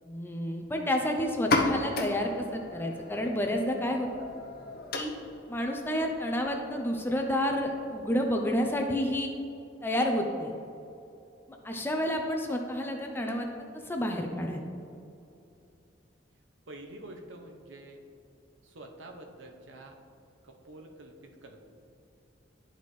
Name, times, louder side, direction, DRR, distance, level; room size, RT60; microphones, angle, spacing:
voice 1, 0.0-4.1 4.9-5.1 5.5-9.3 9.8-10.5 11.6-13.5 13.7-14.6, left 1 dB, 10° left, 3 dB, 0.5 m, -30 dB
sound 1, 1.3-8.8, left 2 dB, 50° left, 0.8 m, -35 dB
voice 2, 16.7-18.0 18.6-20.0 20.4-21.6, right 1 dB, 75° right, 2 dB, 0.8 m, -47 dB
11.5 x 4.2 x 3.2 m, 2.7 s
head